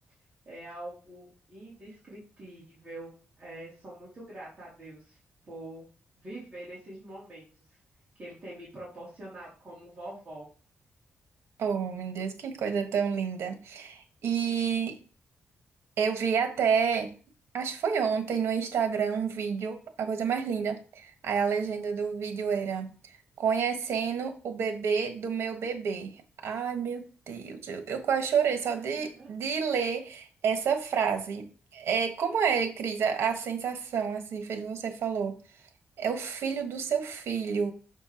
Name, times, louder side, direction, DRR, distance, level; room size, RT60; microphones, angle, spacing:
voice 1, 0.4-5.2 5.4-5.9 6.1-7.8 8.1-10.5 28.7-29.3, right 1 dB, 25° right, -8 dB, 2.9 m, -45 dB
voice 2, 11.6-15.0 16.0-17.1 17.5-22.9 23.4-26.1 26.4-31.5 31.7-35.4 36.0-37.7, right 6 dB, 80° right, 6 dB, 1.4 m, -29 dB
6.5 x 4.5 x 4.4 m, 0.37 s
wide cardioid pair, 175°, 4 cm